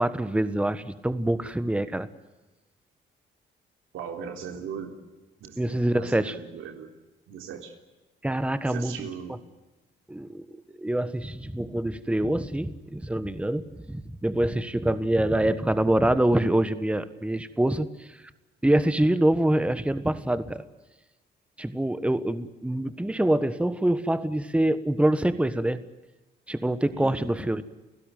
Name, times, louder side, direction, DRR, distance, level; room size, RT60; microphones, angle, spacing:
voice 1, 0.0-2.1 5.6-6.4 8.2-9.1 10.1-10.4 10.7-18.2 18.6-20.6 21.6-25.8 26.5-27.6, right 1 dB, 5° right, 13 dB, 1.4 m, -25 dB
voice 2, 3.9-5.0 5.4-5.6 5.9-6.9 7.3-7.8 8.6-9.4 26.9-27.3, right 7 dB, 85° right, 5 dB, 3.7 m, -38 dB
29.5 x 16.5 x 9.2 m, 1.1 s
cardioid pair, 90°, 20 cm